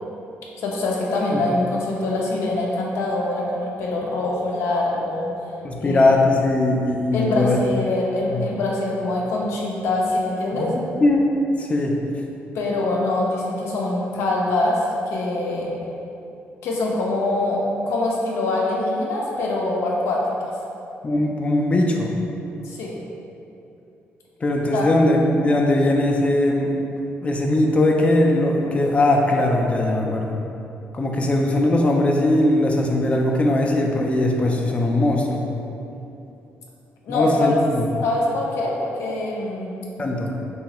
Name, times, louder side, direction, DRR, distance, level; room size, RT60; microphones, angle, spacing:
voice 1, 0.6-5.3 5.8-6.1 7.1-10.7 12.5-15.7 16.6-20.2 22.6-23.0 24.7-24.9 37.0-37.6 38.0-39.7, left 2 dB, 90° left, -2 dB, 0.5 m, -24 dB
voice 2, 5.6-7.6 8.3-8.4 10.6-11.3 11.6-12.0 21.0-22.1 24.4-26.8 27.2-30.4 30.9-35.4 37.1-37.9 40.0-40.3, left 1 dB, 30° left, 0 dB, 0.3 m, -20 dB
2.8 x 2.3 x 2.9 m, 2.8 s
cardioid pair, 105°, 4 cm